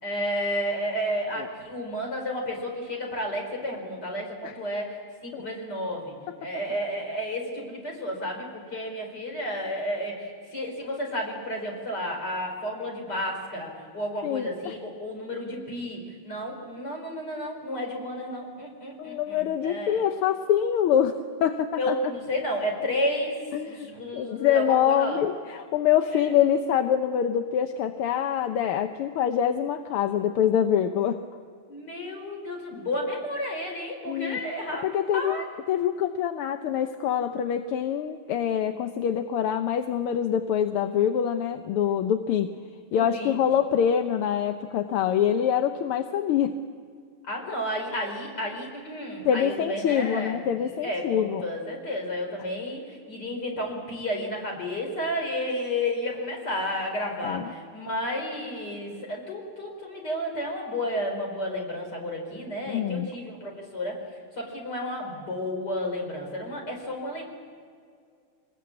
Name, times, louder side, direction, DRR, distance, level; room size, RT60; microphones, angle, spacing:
voice 1, 0.0-6.1 6.4-20.0 21.8-23.4 23.7-25.2 26.1-26.2 31.7-34.8 35.1-35.4 42.9-43.4 47.2-64.0 64.4-67.2, left 1 dB, 50° left, 1 dB, 5.2 m, -32 dB
voice 2, 14.2-14.7 19.0-22.0 23.5-23.9 24.1-31.2 34.1-34.4 34.7-35.4 35.7-42.5 42.9-46.5 49.3-51.4 57.2-57.5 62.7-63.1, left 9 dB, 80° left, 7 dB, 1.8 m, -25 dB
25.5 x 20.5 x 8.6 m, 2.1 s
omnidirectional pair, 2.4 m